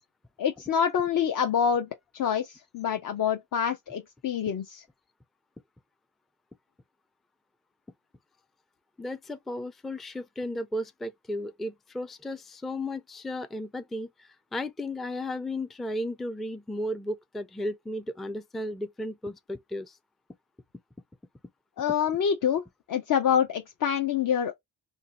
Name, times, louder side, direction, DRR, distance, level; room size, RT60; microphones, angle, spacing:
voice 1, 0.4-4.8 21.8-24.5, left 8 dB, 45° left, 0.6 m, -26 dB
voice 2, 9.0-20.0, left 1 dB, ahead, 0.3 m, -34 dB
2.6 x 2.2 x 4.0 m
hypercardioid pair, 45°, 43 cm